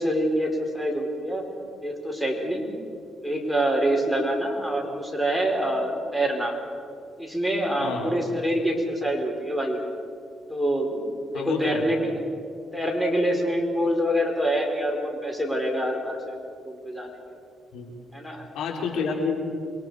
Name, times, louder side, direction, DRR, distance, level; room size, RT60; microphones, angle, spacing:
voice 1, 0.0-1.4 1.8-2.7 3.2-6.5 7.2-9.8 10.5-11.0 11.3-12.2 12.7-16.3 16.6-17.1 18.1-18.5 19.0-19.2, right 1 dB, 5° left, 1 dB, 4.6 m, -26 dB
voice 2, 7.8-8.1 11.3-12.0 17.7-17.9 18.5-19.4, left 4 dB, 85° left, 0 dB, 3.9 m, -28 dB
28.5 x 22.5 x 4.9 m, 2.3 s
cardioid pair, 90°, 0 cm